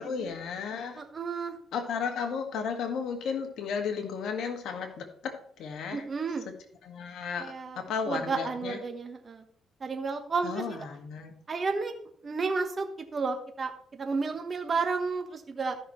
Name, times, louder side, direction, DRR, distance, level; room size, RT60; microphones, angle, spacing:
voice 1, 0.0-1.0 1.7-6.0 6.8-8.8 10.4-11.3, left 6 dB, 75° left, 5 dB, 1.7 m, -34 dB
voice 2, 1.0-1.6 5.9-6.5 7.4-7.8 8.1-9.4 9.8-10.9 11.5-11.9 12.2-12.9 13.1-15.8, right 4 dB, 35° right, 5 dB, 1.2 m, -32 dB
13.5 x 6.2 x 3.1 m, 0.63 s
cardioid pair, 90°, 0 cm